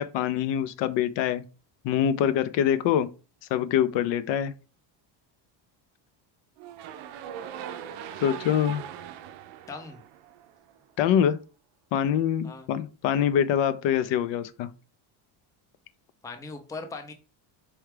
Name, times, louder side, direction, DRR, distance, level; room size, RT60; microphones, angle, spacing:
voice 1, 0.0-1.4 1.8-3.1 3.5-4.5 8.2-8.8 11.0-11.4 11.9-14.7, left 9 dB, 60° left, 0.5 m, -24 dB
sound 1, 6.6-10.8, right 9 dB, 60° right, 0.5 m, -40 dB
voice 2, 9.7-10.0 12.4-12.7 16.2-17.1, left 4 dB, 5° left, 0.5 m, -39 dB
4.6 x 2.3 x 3.2 m
cardioid pair, 115°, 50 cm